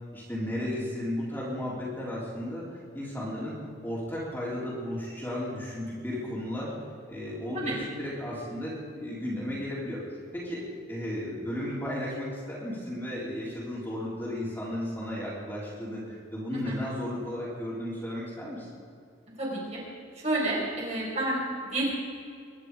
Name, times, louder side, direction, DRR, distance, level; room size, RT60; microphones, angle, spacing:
voice 1, 0.1-2.6 2.9-3.5 3.8-6.7 7.1-10.0 10.3-18.7, left 1 dB, 10° left, -6 dB, 3.6 m, -34 dB
voice 2, 19.4-19.8 20.2-21.4 21.6-21.9, right 2 dB, 35° right, -4 dB, 4.6 m, -29 dB
23.5 x 11.0 x 5.0 m, 2.3 s
head